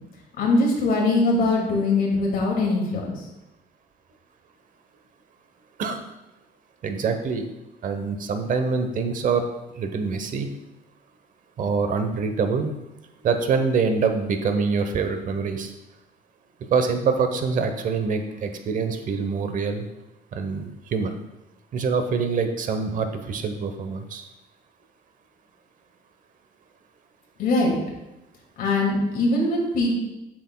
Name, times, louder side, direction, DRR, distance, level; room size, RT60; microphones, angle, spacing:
voice 1, 0.4-3.2 27.4-27.8 28.6-29.9, left 2 dB, 60° left, -1 dB, 2.3 m, -22 dB
voice 2, 6.8-7.5 7.8-9.4 9.7-10.5 11.6-12.7 13.2-15.7 16.7-19.8 20.3-21.2 21.7-24.2, right 5 dB, 50° right, 7 dB, 0.9 m, -25 dB
8.4 x 6.3 x 2.2 m, 0.97 s
cardioid pair, 110°, 17 cm